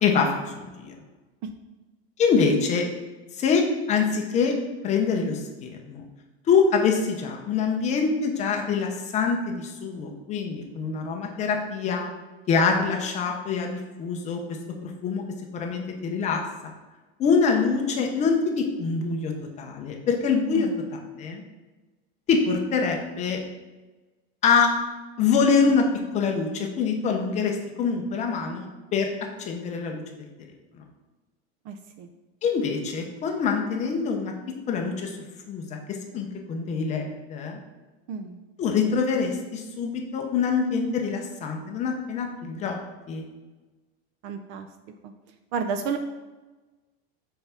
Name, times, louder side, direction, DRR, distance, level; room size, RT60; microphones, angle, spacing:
voice 1, 0.0-1.0 2.2-2.9 3.4-4.5 4.8-6.0 6.5-12.1 12.5-14.4 14.8-15.2 15.5-16.4 17.2-19.3 19.6-20.7 21.2-21.4 22.3-23.4 24.4-24.7 25.2-25.8 26.1-29.1 29.4-30.3 32.4-34.3 34.7-35.2 35.5-35.8 36.1-37.6 38.6-42.8 43.1-43.2, left 5 dB, 25° left, 2 dB, 0.7 m, -25 dB
voice 2, 31.7-32.1 38.1-38.4 44.2-44.7 45.0-45.1 45.5-46.0, right 6 dB, 40° right, 8 dB, 0.4 m, -31 dB
5.6 x 4.5 x 5.7 m, 1.2 s
cardioid pair, 175°, 30 cm